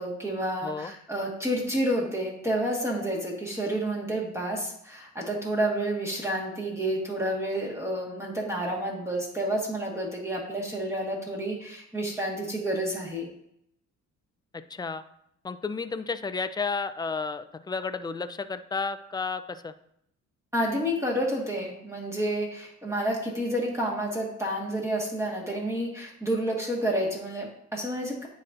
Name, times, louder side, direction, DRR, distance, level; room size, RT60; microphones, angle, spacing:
voice 1, 0.0-13.3 20.5-28.3, right 1 dB, 10° right, -3 dB, 1.5 m, -29 dB
voice 2, 14.7-15.0 15.4-19.7, left 4 dB, 15° left, 11 dB, 0.3 m, -32 dB
9.7 x 4.1 x 2.5 m, 0.74 s
cardioid pair, 90°, 30 cm